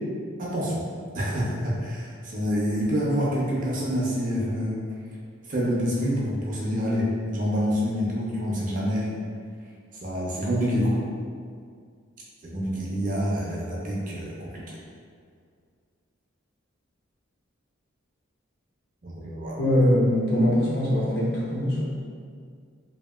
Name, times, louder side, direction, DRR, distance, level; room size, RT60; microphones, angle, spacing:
voice 1, 0.4-0.9 1.1-4.8 5.5-9.1 10.0-11.0 12.4-14.6 19.0-19.6, equal, 40° right, -5 dB, 0.5 m, -27 dB
voice 2, 19.6-21.8, left 1 dB, 50° left, -6 dB, 0.6 m, -22 dB
2.8 x 2.6 x 2.3 m, 2.1 s
head